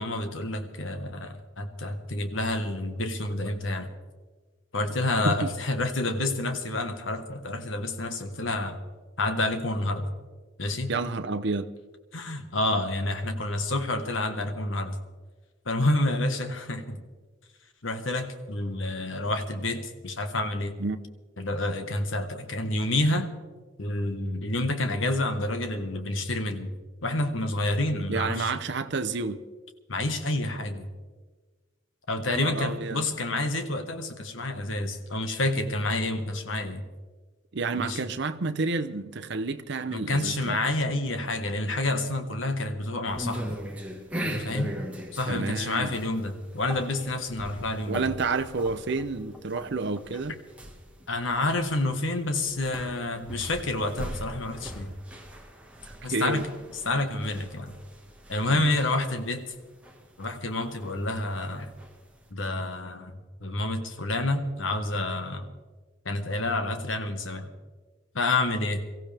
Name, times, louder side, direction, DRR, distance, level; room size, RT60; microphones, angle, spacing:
voice 1, 0.0-3.9 4.7-8.8 9.2-10.1 10.6-10.9 12.1-15.0 15.6-17.0 17.8-20.7 21.4-23.3 23.8-26.7 27.0-28.5 29.9-30.9 32.1-36.8 37.8-38.0 39.9-43.6 44.2-44.7 45.1-48.0 51.1-54.9 56.0-56.5 56.8-57.7 58.3-59.5 60.2-61.7 62.3-63.1 63.4-65.5 66.0-67.5 68.1-68.8, left 2 dB, 75° left, 7 dB, 1.5 m, -29 dB
voice 2, 10.9-11.7 20.8-21.0 28.1-29.4 32.3-33.0 37.5-40.6 45.3-46.0 47.9-50.4 55.9-56.4 58.5-58.7, right 3 dB, 60° right, 8 dB, 0.8 m, -30 dB
sound 1, 43.1-62.3, equal, 5° right, 1.7 m, -40 dB
23.5 x 15.0 x 3.5 m, 1.4 s
head